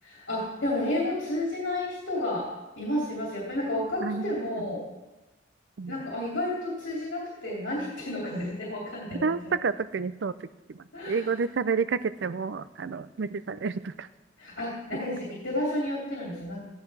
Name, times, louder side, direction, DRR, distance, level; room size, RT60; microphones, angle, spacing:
voice 1, 0.0-2.5 2.8-4.8 5.9-9.5 10.9-11.3 14.4-16.7, left 1 dB, 80° left, -5 dB, 2.7 m, -31 dB
voice 2, 4.0-4.3 5.8-6.0 9.2-10.3 10.7-14.1, right 5 dB, 70° right, 14 dB, 0.5 m, -29 dB
15.0 x 10.5 x 3.3 m, 1.1 s
head